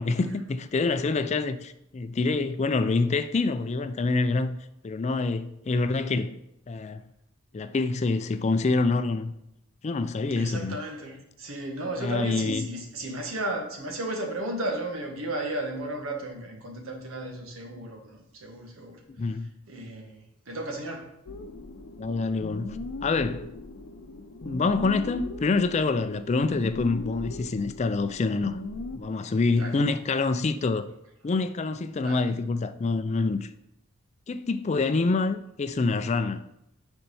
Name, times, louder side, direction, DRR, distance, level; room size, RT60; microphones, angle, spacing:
voice 1, 0.0-4.6 4.8-6.4 6.7-7.0 7.5-9.3 9.8-10.8 12.0-12.7 19.2-19.5 22.0-23.5 24.4-28.6 28.9-30.9 31.2-33.5 34.3-36.4, left 3 dB, 35° left, 0.4 m, -26 dB
voice 2, 10.4-19.0 19.3-19.4 19.7-21.1 29.5-29.8 32.0-32.2 33.1-33.2 34.7-34.8, right 1 dB, 90° right, 1.5 m, -34 dB
sound 1, 21.3-29.0, left 2 dB, 90° left, 0.6 m, -39 dB
6.9 x 4.4 x 5.4 m
head